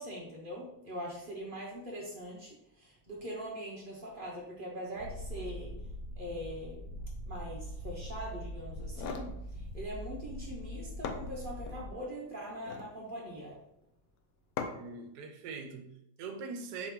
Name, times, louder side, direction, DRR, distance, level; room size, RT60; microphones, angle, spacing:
voice 1, 0.0-5.7 6.2-6.8 7.3-13.6, equal, 45° right, 0.7 m, -42 dB
Purr, 4.9-11.9, equal, 35° left, 0.9 m, -42 dB
sound 1, 8.8-9.3 10.6-10.7 11.0-11.8 12.5-13.0 14.6-15.0, left 6 dB, 75° left, 0.8 m, -39 dB
voice 2, 14.7-16.9, right 4 dB, 70° right, 1.1 m, -42 dB
4.9 x 2.9 x 3.6 m
omnidirectional pair, 1.9 m